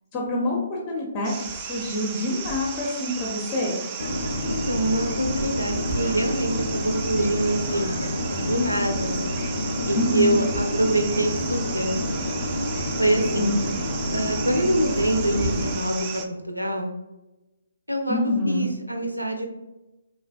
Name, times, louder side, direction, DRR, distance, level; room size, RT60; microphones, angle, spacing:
voice 1, 0.1-3.8 10.0-10.4 13.3-13.6 18.1-18.7, left 1 dB, 25° left, -2 dB, 0.6 m, -26 dB
sound 1, 1.2-16.2, right 5 dB, 25° right, 0.3 m, -34 dB
sound 2, 4.0-15.8, left 1 dB, 75° left, 0.5 m, -29 dB
voice 2, 4.5-7.9 8.4-9.2 9.9-11.9 13.0-13.5 14.1-16.9 17.9-19.5, right 1 dB, 90° right, 4 dB, 0.4 m, -25 dB
3.3 x 2.2 x 2.3 m, 1.0 s
figure-of-eight pair, 135°, 0 cm